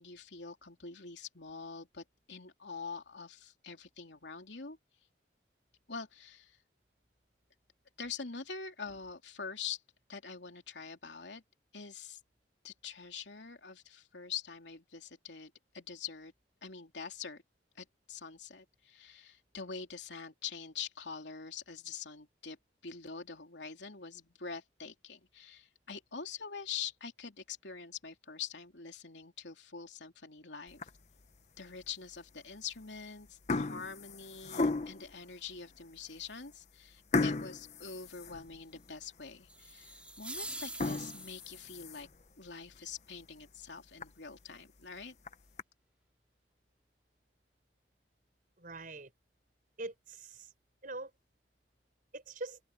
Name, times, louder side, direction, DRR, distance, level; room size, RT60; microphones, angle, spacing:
voice 1, 0.0-4.8 5.9-6.6 8.0-9.8 10.1-11.4 11.7-12.2 12.6-16.3 16.6-17.4 17.7-22.6 22.8-30.8 31.6-42.1 42.4-45.1, left 6 dB, 80° left, 3.2 m, -45 dB
sound 1, 30.7-31.2 31.8-31.9 32.7-33.0 33.3-35.1 35.7-35.8 36.2-36.3 37.1-38.9 39.3-39.4 39.9-40.0 40.6-42.2 42.7-42.8 43.2-43.3 43.6-43.7 44.0-44.1 45.0-45.6, left 3 dB, 40° left, 0.8 m, -35 dB
sound 2, 39.5-41.7, right 2 dB, 5° right, 2.5 m, -44 dB
voice 2, 48.6-49.1 49.8-50.5 50.8-51.1 52.1-52.6, right 2 dB, 50° right, 5.0 m, -43 dB
head